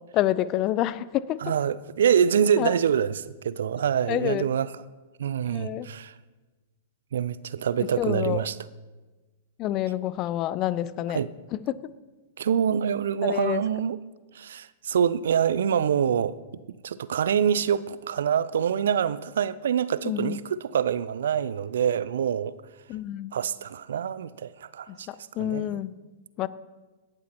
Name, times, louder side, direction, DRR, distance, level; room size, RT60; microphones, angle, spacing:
voice 1, 0.1-1.4 2.6-2.7 4.1-4.5 5.5-5.9 8.0-8.5 9.6-11.2 11.5-11.8 13.2-13.6 20.0-20.4 22.9-23.3 24.9-25.9 26.4-26.5, left 13 dB, 35° left, 0.5 m, -28 dB
voice 2, 1.4-4.7 5.2-6.1 7.1-8.6 11.1-11.3 12.4-14.0 14.3-16.4 16.8-22.5 23.3-25.8, right 8 dB, 70° right, 0.5 m, -25 dB
17.5 x 11.5 x 3.0 m
figure-of-eight pair, 105°, 0 cm